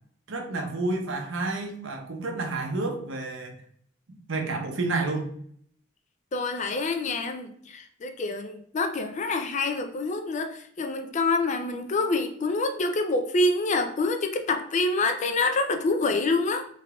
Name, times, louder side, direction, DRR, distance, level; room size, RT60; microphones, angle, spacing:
voice 1, 0.3-3.6 4.1-5.3, right 2 dB, 65° right, 0.7 m, -30 dB
voice 2, 6.3-16.7, left 3 dB, 35° left, 0.4 m, -26 dB
3.4 x 3.4 x 2.3 m
head